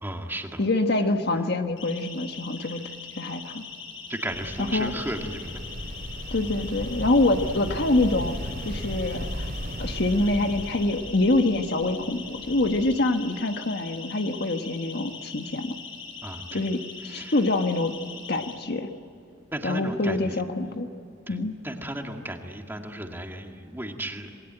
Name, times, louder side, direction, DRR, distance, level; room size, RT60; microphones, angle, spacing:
voice 1, 0.0-0.6 4.1-5.6 16.2-16.7 17.0-17.4 19.5-20.4 21.3-21.4 21.6-24.3, right 1 dB, 10° right, 3 dB, 2.1 m, -34 dB
voice 2, 0.6-3.6 4.7-4.9 6.3-8.3 8.6-9.5 9.8-15.7 16.5-17.9 18.3-18.9 19.6-20.9 21.3-21.6, left 2 dB, 55° left, 6 dB, 1.4 m, -25 dB
Siren, 1.8-18.5, left 5 dB, 75° left, 7.5 m, -41 dB
sound 1, 4.3-13.0, equal, 55° right, 3.6 m, -36 dB
27.5 x 21.0 x 9.0 m, 2.6 s
head